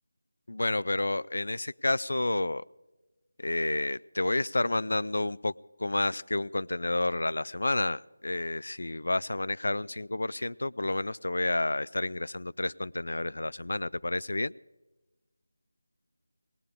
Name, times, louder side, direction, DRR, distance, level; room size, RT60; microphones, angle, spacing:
voice 1, 0.5-2.6 3.4-5.5 5.8-14.5, left 2 dB, 70° left, 19 dB, 0.4 m, -30 dB
20.0 x 19.5 x 3.5 m, 1.1 s
figure-of-eight pair, 180°, 0 cm